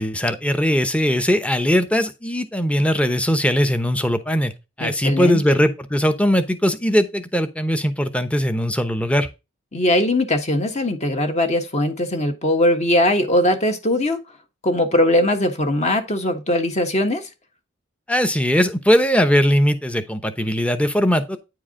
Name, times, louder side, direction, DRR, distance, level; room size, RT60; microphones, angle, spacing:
voice 1, 0.0-4.5 4.8-9.3 18.1-21.4, equal, 5° left, 0.8 m, -20 dB
voice 2, 4.8-5.6 9.7-14.2 14.6-17.3, left 1 dB, 35° left, 1.4 m, -20 dB
9.5 x 4.7 x 3.7 m
head